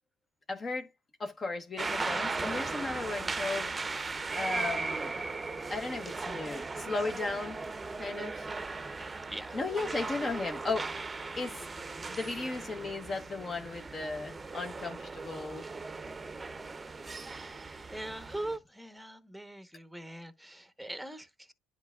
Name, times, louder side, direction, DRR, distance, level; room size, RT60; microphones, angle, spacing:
voice 1, 0.5-0.9 1.2-3.7 4.3-5.3 5.7-7.6 8.0-8.5 9.5-11.1 11.4-11.6 12.1-15.7, left 3 dB, 30° left, 1.0 m, -36 dB
sound 1, 1.8-18.6, right 3 dB, 20° right, 0.8 m, -37 dB
voice 2, 9.3-9.6 17.6-21.5, right 1 dB, ahead, 1.0 m, -42 dB
10.5 x 4.5 x 2.4 m
hypercardioid pair, 70°, 0 cm